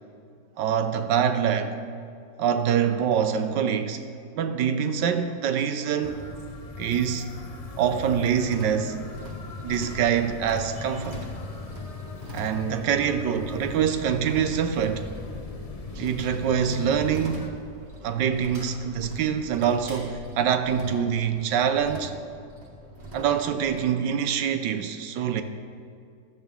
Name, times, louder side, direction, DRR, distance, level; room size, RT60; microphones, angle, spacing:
voice 1, 0.6-1.8 2.4-4.0 4.3-6.3 6.8-7.3 7.8-9.0 9.6-11.2 12.3-15.1 16.0-17.5 18.0-22.1 23.1-25.4, right 8 dB, 80° right, 1.4 m, -25 dB
sound 1, 6.0-17.5, left 3 dB, 70° left, 0.3 m, -38 dB
sound 2, 8.4-23.9, equal, 40° right, 1.7 m, -44 dB
sound 3, 14.2-20.4, left 2 dB, 60° right, 4.4 m, -48 dB
15.0 x 12.0 x 3.6 m
omnidirectional pair, 1.9 m